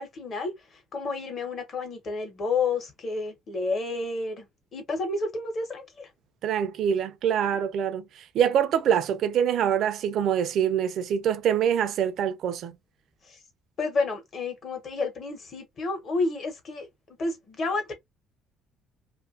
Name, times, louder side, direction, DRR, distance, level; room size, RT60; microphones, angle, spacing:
voice 1, 0.0-4.4 4.7-6.1 13.3-13.4 13.8-16.9 17.2-17.9, left 3 dB, 35° left, 1.0 m, -30 dB
voice 2, 6.4-8.0 8.3-12.7, right 9 dB, 55° right, 0.5 m, -25 dB
2.7 x 2.5 x 2.5 m
cardioid pair, 155°, 0 cm